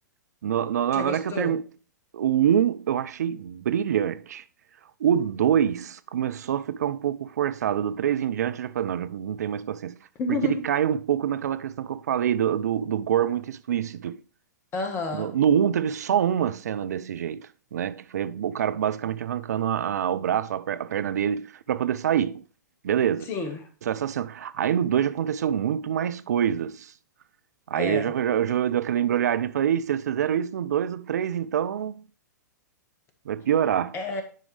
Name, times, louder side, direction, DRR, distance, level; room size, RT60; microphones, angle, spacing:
voice 1, 0.4-1.6 2.1-4.4 5.0-10.0 10.3-14.2 15.1-22.4 22.8-23.3 23.8-26.9 27.7-32.0 33.3-33.9, right 9 dB, 60° right, 0.4 m, -25 dB
voice 2, 0.9-1.5 10.2-10.5 14.7-15.3 23.3-23.6 27.8-28.1 33.9-34.2, left 3 dB, 25° left, 1.5 m, -30 dB
10.0 x 5.0 x 3.4 m
figure-of-eight pair, 105°, 10 cm